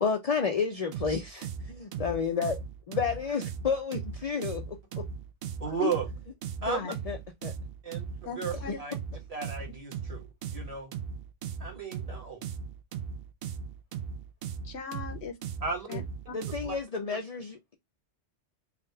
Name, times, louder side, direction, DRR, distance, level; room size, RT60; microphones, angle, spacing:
voice 1, 0.0-2.6 2.9-5.0 6.7-6.8 7.1-7.2 7.4-7.5 8.7-8.8 16.3-17.8, left 5 dB, 45° left, 0.5 m, -31 dB
sound 1, 0.9-16.8, right 7 dB, 60° right, 0.7 m, -38 dB
voice 2, 5.6-6.1 6.6-6.9 7.8-8.0 8.3-8.9 9.3-10.9 11.6-12.4 15.6-15.9 16.6-16.8, right 5 dB, 30° right, 1.1 m, -34 dB
voice 3, 8.2-8.8 14.6-15.3 15.9-16.3, left 7 dB, 65° left, 1.0 m, -37 dB
3.6 x 2.4 x 4.3 m
omnidirectional pair, 1.3 m